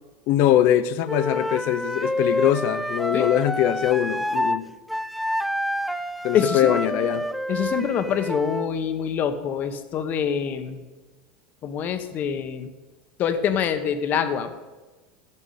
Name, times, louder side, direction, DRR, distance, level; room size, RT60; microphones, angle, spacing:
voice 1, 0.3-4.7 6.2-7.3, left 11 dB, 55° left, 0.7 m, -22 dB
Wind instrument woodwind instrument, 1.1-4.6 4.9-8.7, left 1 dB, ahead, 0.4 m, -28 dB
voice 2, 6.3-7.1 7.5-10.8 11.6-12.7 13.2-14.6, left 8 dB, 40° left, 1.1 m, -25 dB
9.9 x 6.9 x 8.1 m
supercardioid pair, 130°, 4 cm